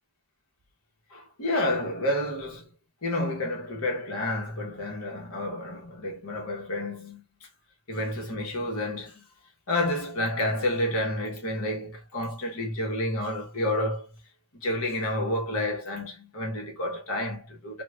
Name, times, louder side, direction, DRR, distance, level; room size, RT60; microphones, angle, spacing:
voice 1, 1.1-2.7 3.0-7.2 7.9-9.3 9.7-14.1 14.5-17.8, left 1 dB, 75° left, 1.1 m, -30 dB
3.2 x 2.4 x 2.4 m
head